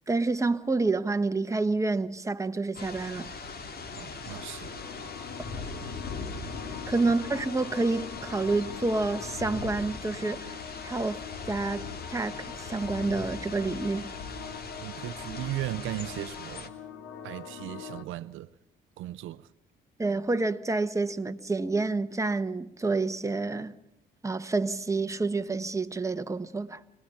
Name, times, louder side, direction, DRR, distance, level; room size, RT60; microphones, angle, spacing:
voice 1, 0.1-3.3 6.9-14.1 20.0-23.7 24.2-26.8, right 3 dB, 15° right, 1.2 m, -28 dB
sound 1, 2.7-16.7, left 4 dB, 50° left, 2.4 m, -40 dB
voice 2, 3.9-4.7 7.0-7.1 14.8-16.7 17.2-18.5 19.0-19.5, right 14 dB, 90° right, 0.7 m, -37 dB
sound 2, 4.2-18.0, left 8 dB, 80° left, 1.9 m, -44 dB
25.5 x 19.0 x 5.7 m
cardioid pair, 90°, 20 cm